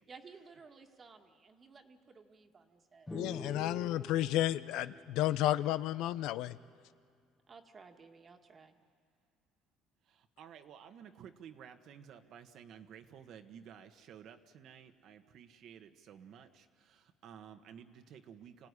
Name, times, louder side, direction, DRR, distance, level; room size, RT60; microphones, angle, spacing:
voice 1, 0.1-3.1 7.5-8.7, right 4 dB, 30° right, 5 dB, 1.8 m, -56 dB
voice 2, 3.1-6.6, left 14 dB, 70° left, 16 dB, 0.6 m, -32 dB
sound 1, 3.1-6.6, left 2 dB, 10° left, 0.7 m, -47 dB
voice 3, 10.1-18.7, right 8 dB, 60° right, 8 dB, 1.4 m, -53 dB
27.0 x 16.5 x 9.8 m, 2.1 s
supercardioid pair, 105°, 0 cm